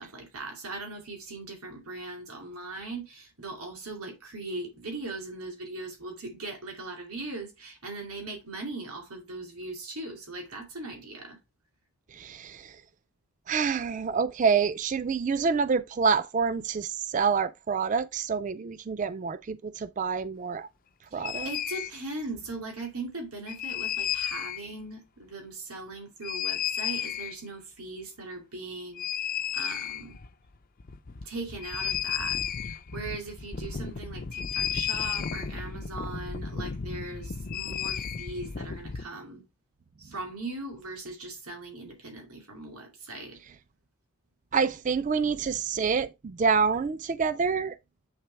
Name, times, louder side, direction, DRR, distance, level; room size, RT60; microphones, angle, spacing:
voice 1, 0.0-11.4 21.1-29.0 29.5-30.1 31.2-39.4 40.0-43.4, right 2 dB, 90° right, 2.5 m, -39 dB
voice 2, 12.1-12.8 13.5-20.7 21.1-21.5 44.5-47.8, right 5 dB, 35° right, 0.3 m, -27 dB
sound 1, 21.2-21.9 23.5-24.6 26.2-27.4 29.0-30.3 30.5-30.6 30.8-39.1, left 8 dB, 40° left, 0.4 m, -33 dB
8.0 x 3.7 x 4.4 m
head